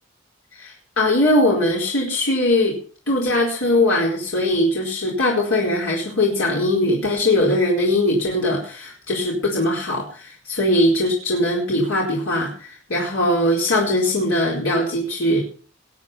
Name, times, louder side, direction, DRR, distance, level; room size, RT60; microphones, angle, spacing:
voice 1, 0.5-2.8 3.1-15.4, left 1 dB, 85° left, -3 dB, 4.6 m, -20 dB
21.0 x 8.5 x 5.6 m, 0.42 s
head